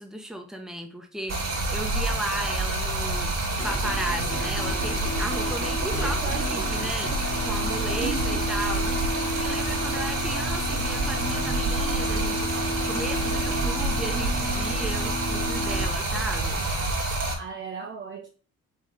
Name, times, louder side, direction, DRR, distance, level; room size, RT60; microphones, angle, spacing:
voice 1, 0.0-7.1 7.5-16.6, right 1 dB, ahead, 1.4 m, -35 dB
Stream, 1.3-17.3, right 2 dB, 55° right, 2.7 m, -28 dB
sound 1, 3.6-15.8, left 1 dB, 45° left, 2.3 m, -33 dB
voice 2, 5.9-7.0 7.9-8.5 17.4-18.3, right 6 dB, 40° right, 0.8 m, -36 dB
5.4 x 3.6 x 5.4 m
cardioid pair, 90°, 30 cm